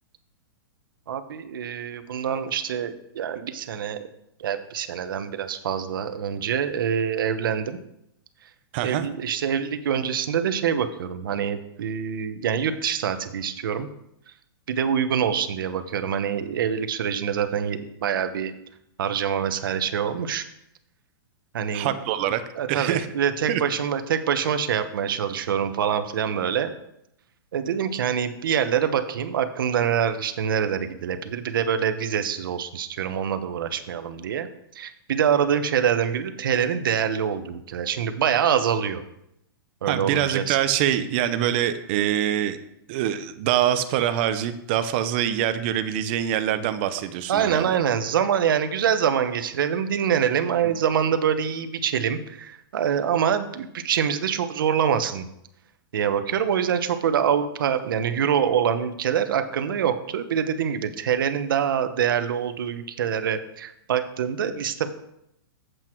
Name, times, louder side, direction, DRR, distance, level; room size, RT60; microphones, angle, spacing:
voice 1, 1.1-4.1 4.4-7.8 8.8-13.9 14.7-18.5 19.0-20.5 21.5-21.9 22.6-26.8 27.5-34.5 34.7-39.0 39.8-40.6 47.3-55.3 55.9-64.9, right 8 dB, 65° right, 10 dB, 0.9 m, -25 dB
voice 2, 8.7-9.1 21.7-22.4 22.7-23.1 23.5-23.6 39.9-42.6 42.9-47.7, right 11 dB, 30° right, 10 dB, 0.5 m, -24 dB
8.0 x 7.9 x 4.5 m, 0.80 s
hypercardioid pair, 175°, 12 cm